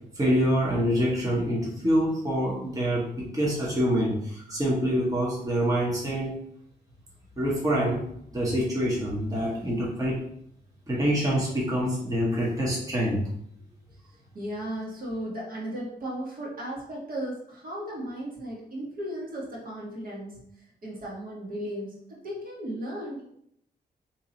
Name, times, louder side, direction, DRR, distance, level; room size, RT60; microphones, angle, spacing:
voice 1, 0.1-6.4 7.4-8.0 8.3-10.2 10.9-13.2, equal, 20° right, -5 dB, 1.0 m, -26 dB
voice 2, 14.3-20.4 20.8-23.2, right 1 dB, 55° right, -4 dB, 1.4 m, -35 dB
2.9 x 2.8 x 3.9 m, 0.70 s
cardioid pair, 95°, 17 cm